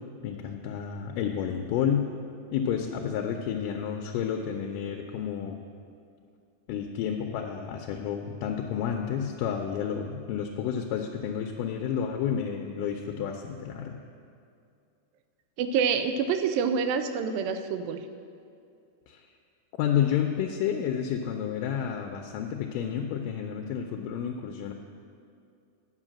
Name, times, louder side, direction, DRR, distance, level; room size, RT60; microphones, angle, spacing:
voice 1, 0.2-2.1 2.5-5.6 6.7-14.0 19.1-19.2 19.8-24.7, left 8 dB, 80° left, 3 dB, 2.1 m, -30 dB
voice 2, 15.6-18.1, right 6 dB, 85° right, 9 dB, 2.4 m, -27 dB
9.8 x 5.8 x 7.4 m, 2.4 s
omnidirectional pair, 4.0 m